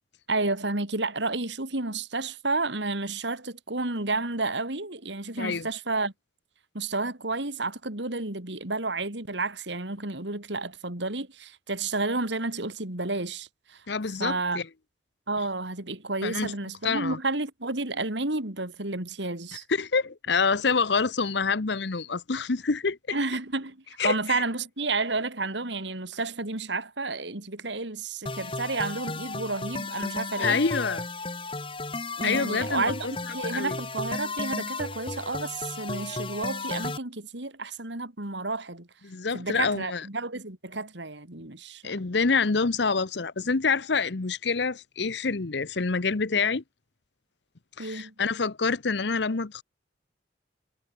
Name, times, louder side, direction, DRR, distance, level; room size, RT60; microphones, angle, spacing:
voice 1, 0.3-6.1 6.7-13.8 14.2-14.6 15.3-19.6 23.1-30.6 32.2-38.9 39.3-42.0 47.8-48.1, right 3 dB, 70° right, 3.3 m, -31 dB
voice 2, 5.4-5.7 13.9-14.7 16.2-16.5 16.8-17.2 19.7-23.2 24.0-24.4 30.4-31.0 32.2-33.8 39.0-40.1 41.8-46.6 47.8-49.6, left 4 dB, 70° left, 0.9 m, -27 dB
sound 1, 28.3-37.0, left 3 dB, 30° left, 3.0 m, -34 dB
head